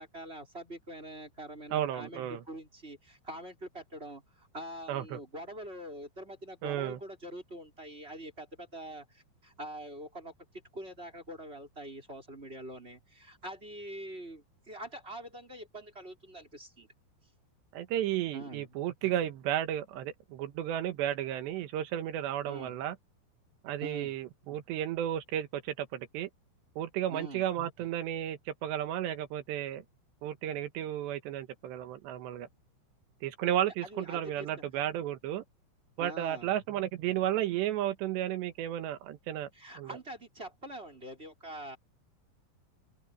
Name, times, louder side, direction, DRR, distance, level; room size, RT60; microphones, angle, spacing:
voice 1, 0.0-10.3 10.7-16.9 18.3-18.7 22.4-22.8 23.8-24.2 27.1-27.5 33.8-34.5 36.0-36.6 39.5-41.8, right 1 dB, 15° right, 5.1 m, -44 dB
voice 2, 1.7-2.4 4.9-5.2 6.6-7.0 17.7-23.0 23.6-26.3 26.8-29.8 30.2-32.5 33.2-35.4 36.0-39.5 39.8-39.9, right 11 dB, 75° right, 3.4 m, -33 dB
open air
omnidirectional pair, 5.3 m